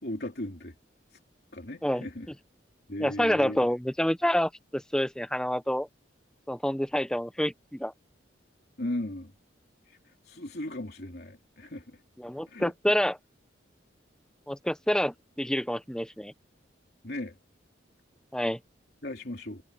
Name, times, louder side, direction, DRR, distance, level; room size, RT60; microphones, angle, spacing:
voice 1, 0.0-0.7 1.5-2.3 2.9-3.6 8.8-9.3 10.3-12.0 12.5-12.7 17.0-17.3 19.0-19.6, left 1 dB, 55° left, 3.3 m, -36 dB
voice 2, 3.0-5.9 6.5-7.9 12.2-13.2 14.5-16.3 18.3-18.6, equal, 5° left, 0.9 m, -28 dB
head